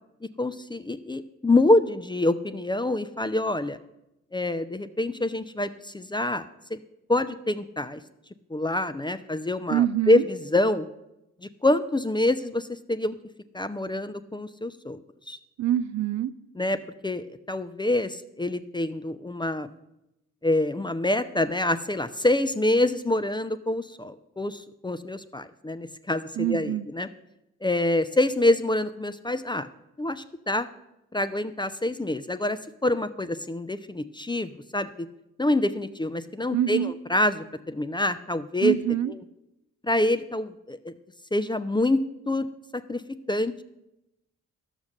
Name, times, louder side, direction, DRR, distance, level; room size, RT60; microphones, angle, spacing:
voice 1, 0.4-3.8 4.3-6.8 7.1-8.0 8.5-10.9 11.6-13.2 13.5-15.0 15.3-15.4 16.6-16.8 17.0-19.7 20.4-27.1 27.6-29.7 30.0-30.7 31.1-34.9 35.4-38.7 39.8-40.9 41.3-42.0 42.3-42.5 42.7-43.0 43.3-43.6, left 1 dB, 10° left, 11 dB, 0.5 m, -26 dB
voice 2, 9.7-10.2 15.6-16.3 26.4-26.9 36.5-36.9 38.6-39.1, right 11 dB, 40° right, 12 dB, 0.5 m, -25 dB
11.5 x 7.1 x 6.4 m, 0.88 s
figure-of-eight pair, 40°, 43 cm